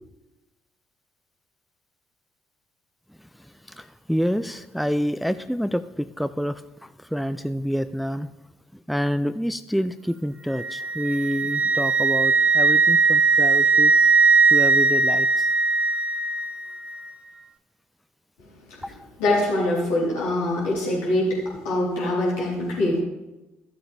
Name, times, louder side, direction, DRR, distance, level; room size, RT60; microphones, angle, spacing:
voice 1, 3.7-8.3 8.9-13.9 14.5-15.5 18.8-18.9, equal, ahead, 12 dB, 0.4 m, -27 dB
Wind instrument woodwind instrument, 10.6-16.5, right 4 dB, 20° right, 0.9 m, -19 dB
voice 2, 19.2-23.0, left 1 dB, 75° left, -6 dB, 3.7 m, -23 dB
13.5 x 7.6 x 3.4 m, 1.0 s
hypercardioid pair, 50°, 6 cm